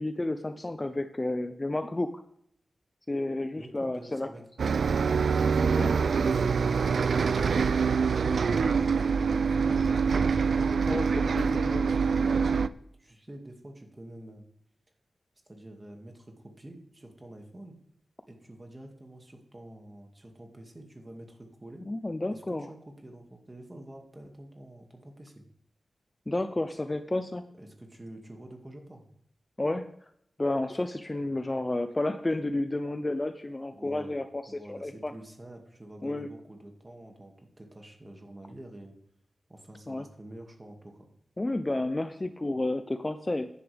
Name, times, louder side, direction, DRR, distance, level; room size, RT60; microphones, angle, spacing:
voice 1, 0.0-2.1 3.1-4.3 5.8-5.9 10.9-11.8 21.9-22.7 26.3-27.4 29.6-29.9 30.4-35.1 36.0-36.3 39.9-40.0 41.4-43.5, left 2 dB, 20° left, 9 dB, 0.6 m, -31 dB
voice 2, 3.6-4.4 10.5-14.4 15.5-17.7 18.3-21.9 22.3-25.4 27.6-29.1 33.7-39.0 39.5-41.1, right 1 dB, 20° right, 2 dB, 2.2 m, -48 dB
Bus, 4.6-12.7, right 5 dB, 80° right, 0.4 m, -25 dB
15.0 x 10.5 x 3.5 m, 0.70 s
wide cardioid pair, 135°, 0 cm